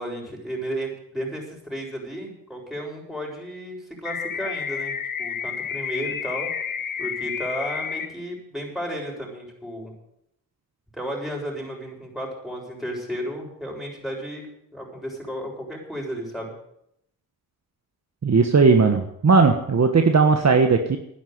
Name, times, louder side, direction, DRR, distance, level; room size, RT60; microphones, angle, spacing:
voice 1, 0.0-6.5 7.0-9.9 10.9-16.5, equal, ahead, -1 dB, 7.5 m, -33 dB
sound 1, 4.1-8.1, left 7 dB, 65° left, 1.5 m, -30 dB
voice 2, 18.2-21.0, right 4 dB, 45° right, 5 dB, 1.5 m, -17 dB
11.5 x 10.5 x 9.6 m, 0.76 s
cardioid pair, 65°, 36 cm